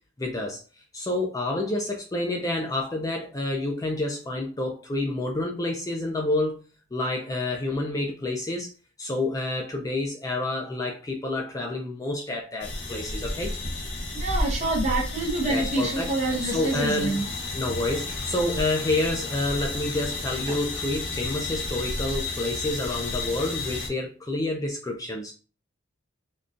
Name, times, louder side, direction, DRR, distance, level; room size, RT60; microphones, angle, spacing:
voice 1, 0.2-0.6 0.9-6.6 6.9-8.7 9.0-13.5 15.5-16.1 16.4-17.1 17.5-25.3, left 2 dB, 15° left, 0 dB, 0.3 m, -28 dB
sound 1, 12.6-23.9, left 2 dB, 60° left, 0.7 m, -32 dB
voice 2, 14.1-17.2 20.5-20.6, right 2 dB, 35° right, 1 dB, 0.7 m, -27 dB
3.6 x 2.2 x 2.5 m, 0.35 s
head